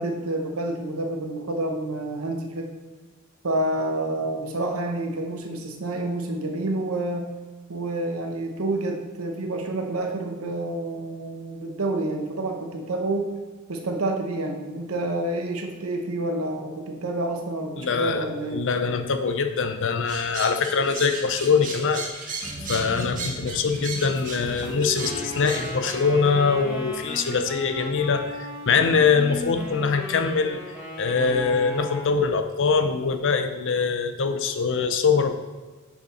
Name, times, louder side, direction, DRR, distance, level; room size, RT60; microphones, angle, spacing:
voice 1, 0.0-2.7 3.4-7.3 7.7-13.3 13.7-18.7, right 2 dB, 80° right, 3 dB, 1.0 m, -28 dB
voice 2, 17.8-18.3 18.5-22.0 22.7-30.6 31.0-35.3, left 5 dB, 60° left, 8 dB, 0.6 m, -23 dB
sound 1, 20.1-26.0, right 4 dB, 40° right, 1.3 m, -35 dB
Train, 22.4-27.7, left 1 dB, 20° left, 2.0 m, -39 dB
Wind instrument woodwind instrument, 25.0-32.1, equal, 5° right, 1.6 m, -36 dB
6.4 x 5.9 x 4.3 m, 1.3 s
head